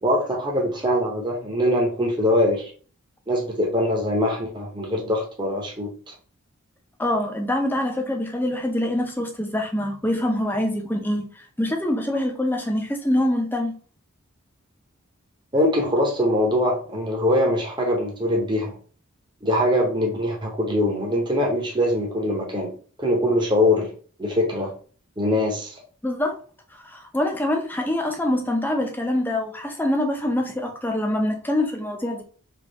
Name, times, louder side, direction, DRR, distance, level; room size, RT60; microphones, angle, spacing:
voice 1, 0.0-2.7 3.3-5.9 15.5-18.7 19.4-22.7 23.0-23.9 24.2-24.7 25.2-25.8, left 1 dB, 20° right, 0.9 m, -22 dB
voice 2, 7.0-11.2 11.6-13.7 26.0-26.4 26.8-32.2, left 1 dB, 10° left, 0.6 m, -24 dB
3.5 x 2.8 x 4.0 m
head